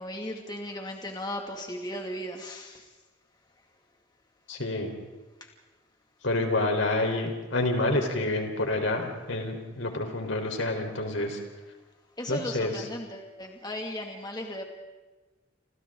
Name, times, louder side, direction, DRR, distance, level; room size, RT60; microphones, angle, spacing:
voice 1, 0.0-2.8 12.2-14.6, left 1 dB, 20° left, 2 dB, 2.3 m, -36 dB
voice 2, 4.5-4.9 6.2-11.4 12.3-12.9, left 2 dB, 75° left, 3 dB, 4.2 m, -28 dB
28.5 x 27.5 x 3.9 m, 1.2 s
head